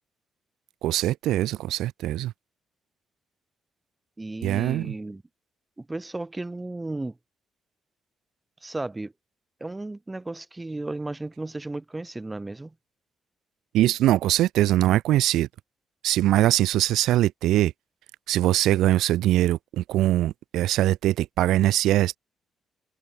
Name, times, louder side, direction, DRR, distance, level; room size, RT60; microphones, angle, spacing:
voice 1, 0.8-2.3 4.4-4.9 13.7-15.5 16.0-17.7 18.3-22.2, right 14 dB, 85° right, 4.9 m, -22 dB
voice 2, 4.2-5.2 5.8-7.2 8.6-9.1 9.6-12.7, right 2 dB, 15° right, 6.5 m, -34 dB
cardioid pair, 90°, 0 cm